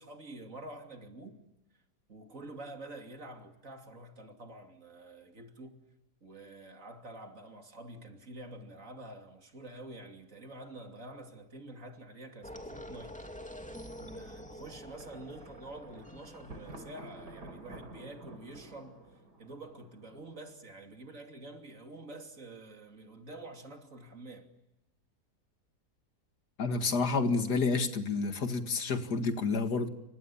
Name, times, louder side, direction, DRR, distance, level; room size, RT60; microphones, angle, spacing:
voice 1, 0.0-1.4 2.1-5.8 6.2-13.2 13.9-19.0 19.4-24.5, right 2 dB, 50° right, 3.2 m, -48 dB
sound 1, 12.4-17.6, equal, 5° left, 2.5 m, -47 dB
Thunder, 14.9-20.7, right 2 dB, 90° right, 4.2 m, -51 dB
voice 2, 26.6-29.9, left 4 dB, 75° left, 2.5 m, -29 dB
29.5 x 25.0 x 7.2 m
omnidirectional pair, 1.7 m